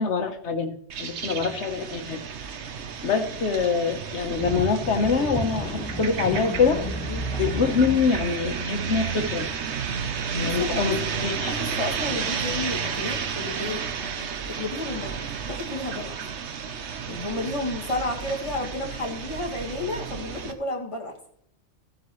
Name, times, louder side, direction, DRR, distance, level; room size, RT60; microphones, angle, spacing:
voice 1, 0.0-2.2 3.0-6.8 7.4-9.5 10.3-11.5, left 5 dB, 75° left, 7 dB, 1.3 m, -25 dB
sound 1, 0.9-20.5, right 6 dB, 75° right, 1.1 m, -32 dB
sound 2, 4.0-8.3, left 1 dB, 5° left, 1.3 m, -33 dB
voice 2, 10.4-10.8 11.5-13.8 14.5-16.2 17.1-21.2, left 2 dB, 25° left, 0 dB, 1.8 m, -32 dB
15.0 x 7.7 x 3.1 m, 0.68 s
omnidirectional pair, 1.2 m